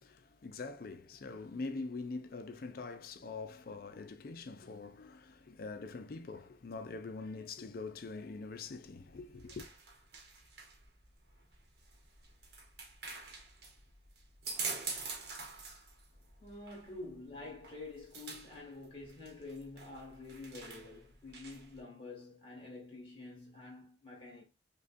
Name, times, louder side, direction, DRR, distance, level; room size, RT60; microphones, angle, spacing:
voice 1, 0.0-9.7, left 3 dB, 50° left, 0.4 m, -44 dB
sound 1, 8.8-21.8, right 4 dB, 55° right, 1.0 m, -46 dB
voice 2, 16.4-24.4, left 3 dB, 30° left, 1.5 m, -48 dB
5.0 x 2.3 x 2.5 m
head